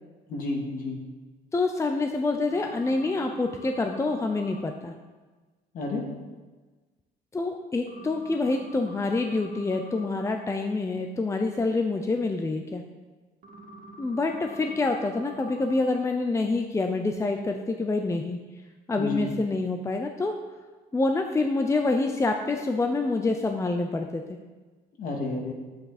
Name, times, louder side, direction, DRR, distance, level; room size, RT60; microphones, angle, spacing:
voice 1, 0.3-1.0 5.7-6.1 19.0-19.3 25.0-25.5, left 2 dB, 55° left, 0 dB, 2.4 m, -31 dB
voice 2, 1.5-4.9 7.3-12.8 14.0-18.4 18.9-20.4 20.9-24.2, left 3 dB, 15° left, 4 dB, 0.6 m, -27 dB
sound 1, 2.5-4.6 7.9-10.2 13.4-15.8, right 2 dB, 55° right, 2.2 m, -46 dB
9.6 x 7.9 x 4.2 m, 1.3 s
cardioid pair, 110°, 17 cm